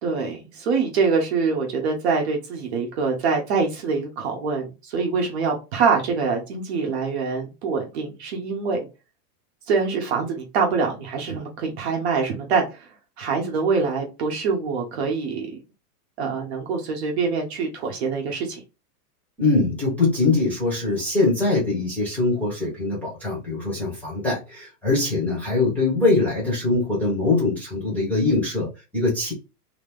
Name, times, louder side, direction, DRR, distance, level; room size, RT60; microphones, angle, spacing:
voice 1, 0.0-8.8 9.7-12.9 13.2-15.6 16.2-18.6, right 5 dB, 40° right, 1 dB, 1.0 m, -24 dB
voice 2, 19.4-29.3, left 3 dB, 5° left, -6 dB, 1.0 m, -22 dB
2.9 x 2.7 x 3.4 m, 0.28 s
supercardioid pair, 165°, 48 cm